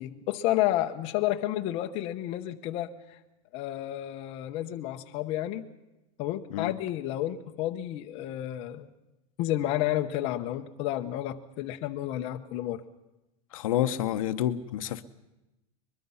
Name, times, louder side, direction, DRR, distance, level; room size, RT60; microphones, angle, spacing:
voice 1, 0.0-2.9 3.5-5.7 6.2-8.9 9.4-12.8, left 14 dB, 30° left, 6 dB, 0.9 m, -31 dB
voice 2, 13.5-15.0, left 12 dB, 70° left, 11 dB, 0.9 m, -29 dB
22.5 x 21.5 x 5.6 m, 0.98 s
supercardioid pair, 175°, 18 cm